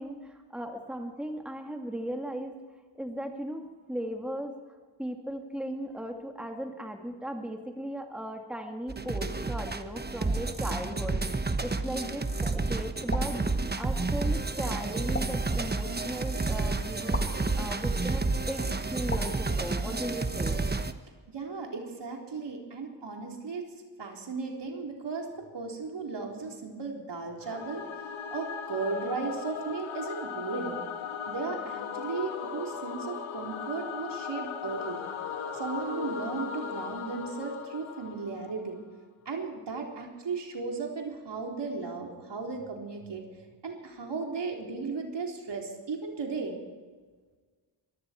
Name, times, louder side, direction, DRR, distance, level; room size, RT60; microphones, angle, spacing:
voice 1, 0.0-2.6 2.9-4.6 5.0-11.2 11.6-13.4 13.8-18.7 18.9-20.6, right 1 dB, ahead, 3 dB, 2.3 m, -37 dB
sound 1, 8.9-20.9, right 3 dB, 20° right, 1.2 m, -30 dB
sound 2, 13.1-13.4 15.1-15.5 17.1-17.4 19.1-19.4, left 2 dB, 25° left, 2.2 m, -36 dB
voice 2, 21.3-23.7 24.0-25.3 25.5-27.8 28.3-30.8 31.3-35.0 35.5-38.8 39.3-43.2 43.6-46.6, right 4 dB, 60° right, 1 dB, 3.9 m, -35 dB
Singing / Musical instrument, 27.4-38.7, left 7 dB, 80° left, 1.8 m, -38 dB
23.0 x 14.0 x 4.5 m, 1.4 s
cardioid pair, 65°, 46 cm